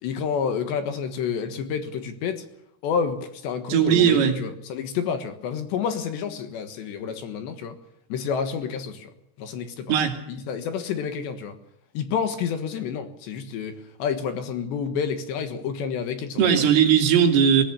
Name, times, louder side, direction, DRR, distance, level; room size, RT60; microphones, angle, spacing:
voice 1, 0.0-2.5 2.8-7.8 8.1-9.1 9.4-9.9 10.3-11.6 11.9-16.7, left 6 dB, 70° left, 8 dB, 3.4 m, -29 dB
voice 2, 3.7-4.4 9.9-10.2 16.4-17.6, right 8 dB, 75° right, 4 dB, 5.1 m, -18 dB
23.5 x 17.0 x 6.9 m, 0.78 s
omnidirectional pair, 5.9 m